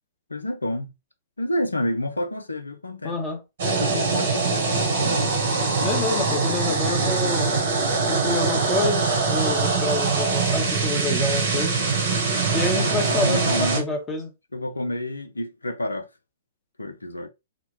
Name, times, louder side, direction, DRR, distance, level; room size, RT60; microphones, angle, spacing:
voice 1, 0.3-0.9 1.4-3.2 3.6-5.4 12.7-13.9 14.5-16.1 16.8-17.3, left 1 dB, 85° left, 0.4 m, -29 dB
voice 2, 3.0-3.4 5.8-7.5 8.1-11.8 12.5-14.3, left 2 dB, 20° left, 0.9 m, -28 dB
sound 1, 3.6-13.8, right 4 dB, 60° right, 1.5 m, -23 dB
4.0 x 2.1 x 2.9 m
figure-of-eight pair, 115°, 0 cm